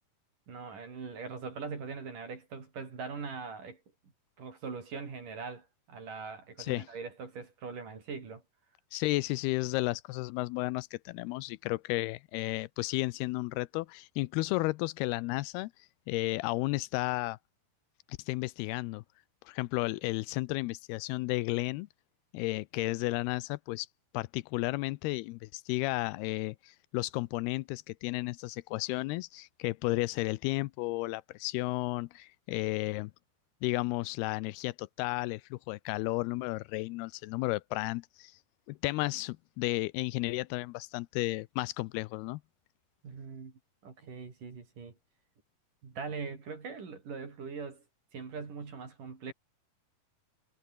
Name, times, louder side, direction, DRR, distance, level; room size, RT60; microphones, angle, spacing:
voice 1, 0.5-3.8 4.4-8.4 43.0-43.5 43.8-45.0 45.8-47.8 48.1-49.3, right 5 dB, 55° right, 5.9 m, -41 dB
voice 2, 8.9-15.7 16.1-17.4 18.3-19.0 19.5-21.9 22.3-23.9 24.1-33.1 33.6-38.3 38.7-42.4, left 21 dB, 85° left, 2.6 m, -33 dB
omnidirectional pair, 4.5 m